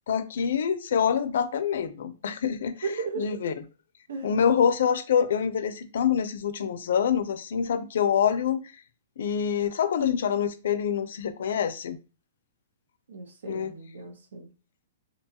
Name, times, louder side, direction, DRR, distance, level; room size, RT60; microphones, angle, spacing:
voice 1, 0.1-2.9 3.2-3.5 4.2-8.7 9.2-12.0 13.5-13.7, left 7 dB, 65° left, 0.4 m, -26 dB
voice 2, 2.8-3.5 4.1-4.4 13.1-14.5, right 5 dB, 85° right, 0.7 m, -36 dB
2.7 x 2.3 x 2.7 m
hypercardioid pair, 170°, 0 cm